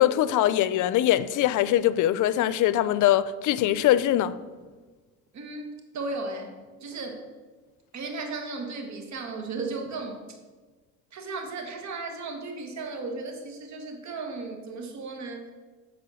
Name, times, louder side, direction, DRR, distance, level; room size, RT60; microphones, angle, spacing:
voice 1, 0.0-4.4, left 12 dB, 80° left, 0.5 m, -22 dB
voice 2, 5.3-7.3 7.9-10.4 11.1-15.5, right 3 dB, 65° right, 1.5 m, -35 dB
8.7 x 4.2 x 6.3 m
cardioid pair, 90°, 30 cm